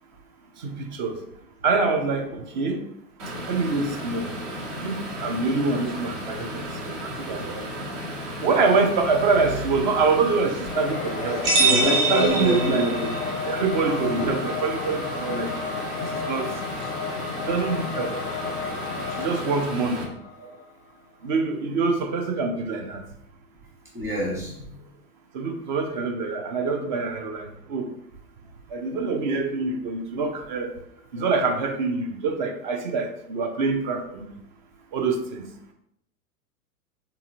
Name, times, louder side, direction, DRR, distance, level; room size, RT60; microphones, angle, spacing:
voice 1, 0.6-1.2 1.6-2.8 3.5-4.3 4.8-7.7 8.4-11.4 11.8-12.9 13.4-15.5 16.0-16.5 17.4-18.2 19.1-20.1 21.2-23.0 25.3-27.9 28.7-30.7 31.1-34.3 34.9-35.5, right 4 dB, 35° right, 5 dB, 0.4 m, -25 dB
sound 1, 3.2-20.0, equal, 50° right, 1.1 m, -34 dB
Singing / Musical instrument, 10.6-20.6, left 5 dB, 30° left, 0.5 m, -33 dB
sound 2, 11.4-13.3, right 3 dB, 70° right, 1.3 m, -23 dB
voice 2, 11.6-12.9 13.9-14.3 20.4-20.5 23.9-24.7, equal, 5° right, -5 dB, 1.1 m, -27 dB
3.7 x 2.9 x 2.6 m, 0.75 s
figure-of-eight pair, 100°, 47 cm